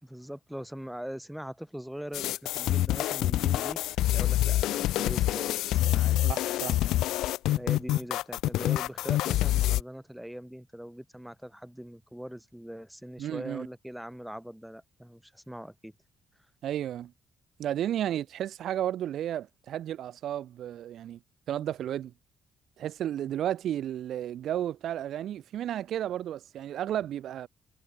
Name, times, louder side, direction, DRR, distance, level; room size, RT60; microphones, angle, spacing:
voice 1, 0.0-6.2 7.5-15.9, equal, 5° right, 2.5 m, -41 dB
sound 1, 2.1-9.8, left 15 dB, 90° left, 0.8 m, -26 dB
voice 2, 6.2-6.8 13.2-13.7 16.6-17.1 17.6-21.2 21.5-22.1 22.8-27.5, right 11 dB, 70° right, 1.8 m, -33 dB
cardioid pair, 90°, 0 cm